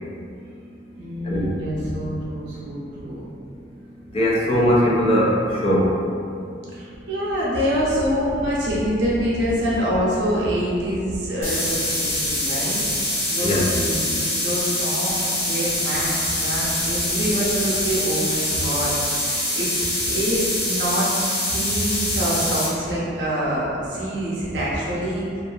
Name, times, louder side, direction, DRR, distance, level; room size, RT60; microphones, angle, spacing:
voice 1, 1.0-3.3 6.7-12.8 13.3-21.1 21.4-25.3, equal, 65° right, -7 dB, 0.6 m, -26 dB
voice 2, 4.1-5.9 13.4-13.8, equal, 35° left, -4 dB, 0.4 m, -19 dB
sound 1, 11.4-22.7, left 1 dB, 15° left, 1.1 m, -24 dB
2.5 x 2.4 x 2.3 m, 2.5 s
head